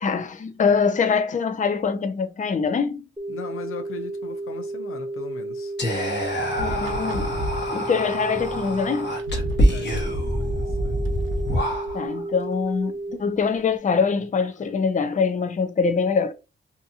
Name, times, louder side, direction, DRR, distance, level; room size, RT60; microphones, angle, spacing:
voice 1, 0.0-3.0 6.6-7.3 7.7-9.2 11.9-16.3, left 5 dB, 35° left, 0.5 m, -24 dB
sound 1, 3.2-13.2, right 2 dB, 10° right, 0.7 m, -33 dB
voice 2, 3.3-5.7 9.7-11.0, left 5 dB, 85° left, 0.6 m, -38 dB
Whispering, 5.8-12.2, equal, 55° left, 1.1 m, -26 dB
sound 2, 6.5-7.7 8.7-8.8 9.0-10.2 11.0-11.9, equal, 70° right, 0.7 m, -32 dB
2.8 x 2.5 x 2.4 m
cardioid pair, 65°, 21 cm